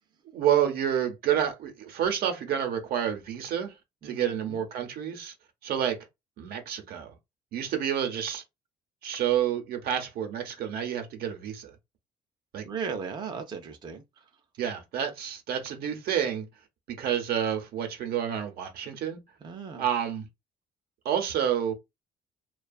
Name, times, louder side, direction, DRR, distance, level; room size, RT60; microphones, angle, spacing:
voice 1, 0.3-3.7 4.0-5.3 5.6-6.0 6.4-7.1 7.5-8.4 9.0-11.7 12.5-12.7 14.6-16.5 16.9-19.2 19.8-20.3 21.0-21.7, right 9 dB, 65° right, 0.7 m, -29 dB
voice 2, 4.0-4.6 12.6-14.0 19.4-19.8, right 6 dB, 25° right, 0.5 m, -36 dB
2.5 x 2.3 x 2.3 m
cardioid pair, 110°, 17 cm